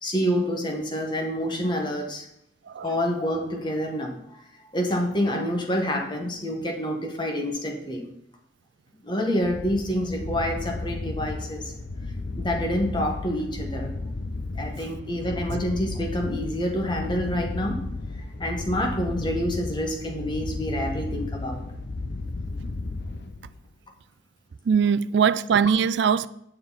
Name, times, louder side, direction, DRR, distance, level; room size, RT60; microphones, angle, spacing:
voice 1, 0.0-2.3 2.8-4.4 4.7-8.1 9.0-11.7 12.4-13.9 14.6-17.8 18.4-21.6, equal, 25° left, 1.6 m, -27 dB
sound 1, 9.4-23.7, left 2 dB, 60° left, 0.7 m, -34 dB
voice 2, 24.7-26.3, right 7 dB, 60° right, 0.3 m, -21 dB
9.4 x 6.8 x 4.1 m
head